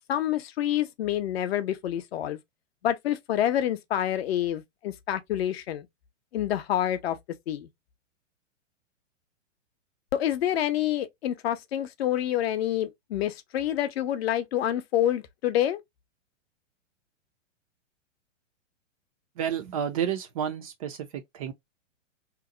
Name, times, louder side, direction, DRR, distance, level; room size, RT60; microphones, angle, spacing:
voice 1, 0.1-2.4 2.8-5.9 6.3-7.2 7.5-7.7 10.1-15.8, left 11 dB, 55° left, 0.6 m, -27 dB
voice 2, 19.4-21.5, right 8 dB, 30° right, 0.4 m, -31 dB
2.9 x 2.0 x 3.6 m
figure-of-eight pair, 110°, 38 cm